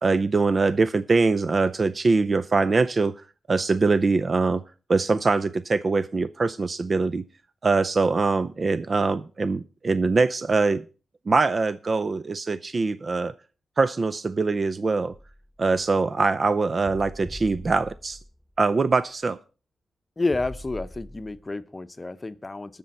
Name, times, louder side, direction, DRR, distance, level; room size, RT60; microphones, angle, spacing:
voice 1, 0.0-3.1 3.5-4.6 4.9-7.2 7.6-10.8 11.3-13.3 13.8-15.1 15.6-18.2 18.6-19.4, right 3 dB, 40° right, 0.5 m, -23 dB
sound 1, 15.1-16.0 16.8-18.5 18.8-18.9 20.3-21.4, equal, 10° right, 2.2 m, -42 dB
voice 2, 20.2-22.8, left 3 dB, 25° left, 0.8 m, -30 dB
20.0 x 6.9 x 4.3 m
cardioid pair, 85°, 0 cm